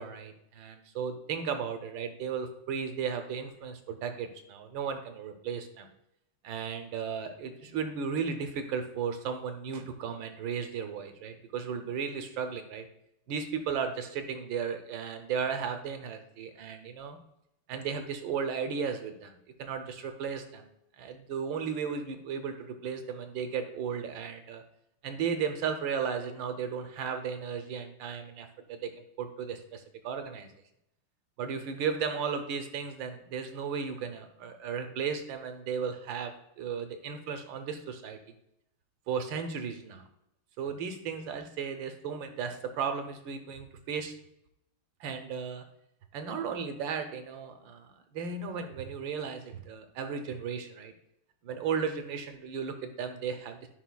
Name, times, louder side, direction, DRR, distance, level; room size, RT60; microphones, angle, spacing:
voice 1, 0.0-5.9 6.4-12.9 13.3-17.2 17.7-19.3 19.6-20.6 21.0-24.6 25.0-28.9 29.2-30.5 31.4-38.2 39.1-40.0 40.6-44.1 45.0-45.6 46.1-50.9 51.4-53.7, right 6 dB, 70° right, 7 dB, 1.3 m, -35 dB
10.0 x 5.2 x 2.2 m, 0.80 s
omnidirectional pair, 2.3 m